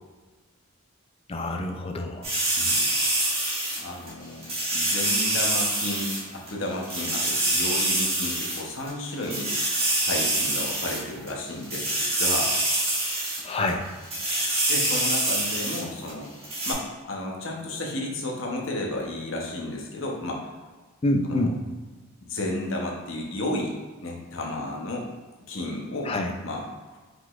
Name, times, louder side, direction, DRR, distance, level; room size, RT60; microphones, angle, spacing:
voice 1, 1.3-2.3 13.4-13.9 21.0-21.6 26.0-26.3, left 1 dB, 25° left, 4 dB, 0.3 m, -26 dB
sound 1, 2.2-4.1 4.4-6.2 6.5-6.6 6.8-8.6 8.9-9.0 9.2-11.3 11.6-13.4 13.7-13.8 14.0-15.8 16.1-16.2 16.4-16.7, right 1 dB, 25° right, 1.4 m, -25 dB
voice 2, 2.6-2.9 3.8-6.1 6.3-9.5 9.8-12.5 14.7-16.3 16.7-20.5 21.2-21.5 22.2-23.7 24.0-25.1 25.5-26.1 26.4-27.0, left 1 dB, 60° left, -1 dB, 0.8 m, -32 dB
4.8 x 3.9 x 2.4 m, 1.3 s
head